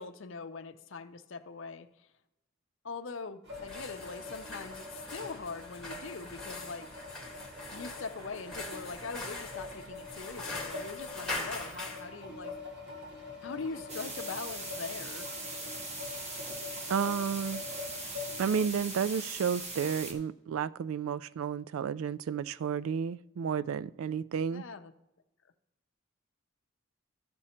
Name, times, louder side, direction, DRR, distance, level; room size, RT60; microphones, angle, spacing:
voice 1, 0.0-2.1 2.8-6.9 7.7-12.6 13.4-15.3 24.5-24.9, left 4 dB, 65° left, 9 dB, 0.6 m, -42 dB
sound 1, 3.4-18.7, left 3 dB, 55° right, 1.9 m, -45 dB
sound 2, 3.5-12.0, left 2 dB, 5° left, 1.7 m, -42 dB
sound 3, 13.9-20.1, right 2 dB, 35° right, 1.3 m, -40 dB
voice 2, 16.9-17.6 18.4-24.6, right 7 dB, 80° right, 18 dB, 0.3 m, -32 dB
13.0 x 6.1 x 4.3 m, 0.98 s
head